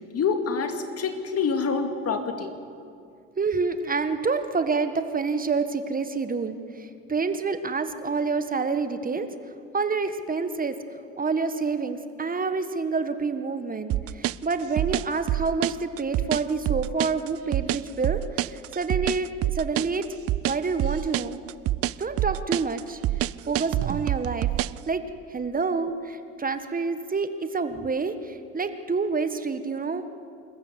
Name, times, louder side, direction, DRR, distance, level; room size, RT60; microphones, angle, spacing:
voice 1, 0.1-2.5, left 5 dB, 45° left, 7 dB, 2.4 m, -26 dB
voice 2, 3.4-9.3 9.7-10.7 11.2-20.0 20.5-21.4 22.0-23.0 23.5-24.5 24.9-25.0 25.3-30.0, right 4 dB, 25° right, 10 dB, 1.4 m, -28 dB
sound 1, 13.9-24.8, right 15 dB, 45° right, 0.5 m, -26 dB
26.5 x 14.5 x 8.3 m, 2.5 s
hypercardioid pair, 65°, 32 cm